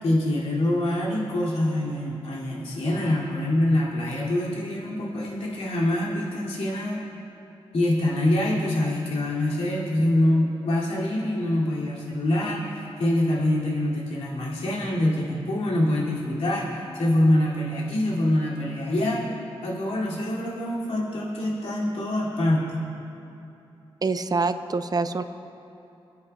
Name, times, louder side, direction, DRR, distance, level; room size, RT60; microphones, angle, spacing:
voice 1, 0.0-7.0 7.7-19.3 19.6-22.8, left 1 dB, 80° left, -6 dB, 2.6 m, -25 dB
voice 2, 24.0-25.2, right 3 dB, 40° right, 10 dB, 0.6 m, -25 dB
24.0 x 9.7 x 2.3 m, 2.9 s
cardioid pair, 55°, 10 cm